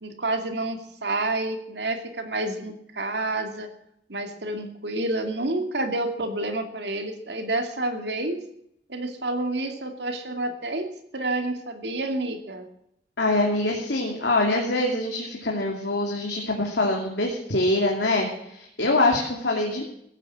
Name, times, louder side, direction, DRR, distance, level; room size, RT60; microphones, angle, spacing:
voice 1, 0.0-3.7 4.1-8.4 8.9-12.7, right 2 dB, 70° right, 6 dB, 2.4 m, -29 dB
voice 2, 13.2-19.8, left 2 dB, 80° left, 0 dB, 2.6 m, -24 dB
16.0 x 9.2 x 7.5 m, 0.74 s
head